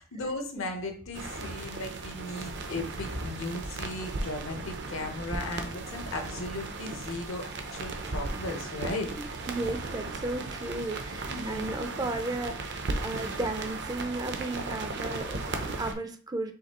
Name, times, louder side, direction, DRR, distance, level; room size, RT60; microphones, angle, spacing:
voice 1, 0.0-9.1 11.3-11.7, left 2 dB, 75° left, 4 dB, 0.9 m, -36 dB
sound 1, 1.1-15.9, right 3 dB, 55° right, 0.6 m, -36 dB
voice 2, 9.2-16.5, right 2 dB, 20° right, 6 dB, 0.4 m, -35 dB
5.0 x 3.2 x 3.0 m, 0.41 s
head